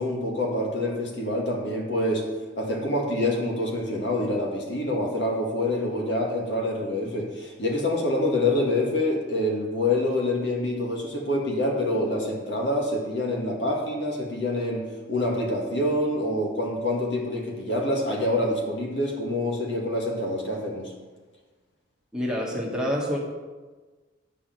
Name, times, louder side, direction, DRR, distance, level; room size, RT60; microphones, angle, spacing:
voice 1, 0.0-2.3 2.6-20.9, left 1 dB, 65° left, 0 dB, 1.9 m, -26 dB
voice 2, 22.1-23.2, equal, 5° right, -3 dB, 1.5 m, -27 dB
9.8 x 4.9 x 7.6 m, 1.3 s
head